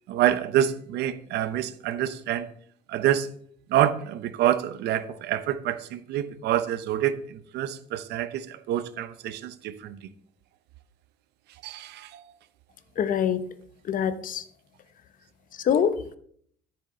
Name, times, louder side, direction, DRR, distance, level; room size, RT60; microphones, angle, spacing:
voice 1, 0.1-2.5 2.9-3.3 3.7-10.0 11.6-12.2, right 11 dB, 80° right, 13 dB, 0.9 m, -27 dB
voice 2, 13.0-13.4 13.8-14.4 15.6-16.2, left 8 dB, 55° left, 12 dB, 1.0 m, -25 dB
13.5 x 7.2 x 3.9 m, 0.62 s
cardioid pair, 110°, 17 cm